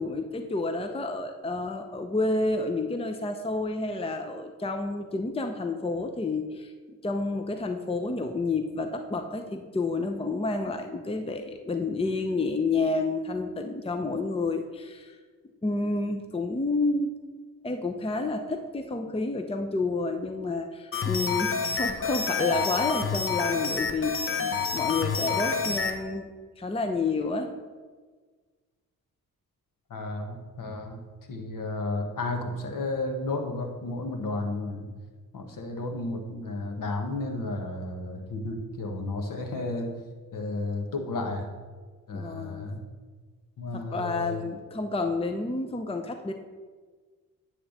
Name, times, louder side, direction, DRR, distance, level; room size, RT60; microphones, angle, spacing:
voice 1, 0.0-15.2 15.6-17.2 17.6-26.2 26.6-27.5 42.1-42.8 43.7-46.3, left 3 dB, 15° left, 6 dB, 0.7 m, -30 dB
sound 1, 20.9-26.0, left 5 dB, 35° left, 1.1 m, -28 dB
voice 2, 29.9-31.0 31.3-34.9 35.3-39.9 40.3-41.5 42.1-42.8 43.6-44.4, left 2 dB, 55° left, 4 dB, 1.5 m, -32 dB
10.0 x 3.6 x 6.5 m, 1.5 s
supercardioid pair, 50°, 39 cm